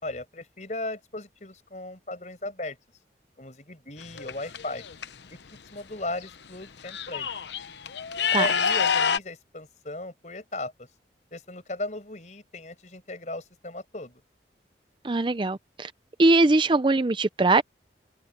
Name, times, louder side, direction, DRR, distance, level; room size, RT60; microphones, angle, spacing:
voice 1, 0.0-2.8 3.4-4.8 5.3-5.4 5.7-7.3 8.3-10.9 11.3-14.2, left 2 dB, 40° left, 5.5 m, -36 dB
sound 1, 4.0-5.1 6.2-6.3 6.6-9.2, left 7 dB, 80° left, 0.8 m, -27 dB
voice 2, 15.0-15.9 16.2-17.6, right 2 dB, 25° right, 0.5 m, -21 dB
open air
head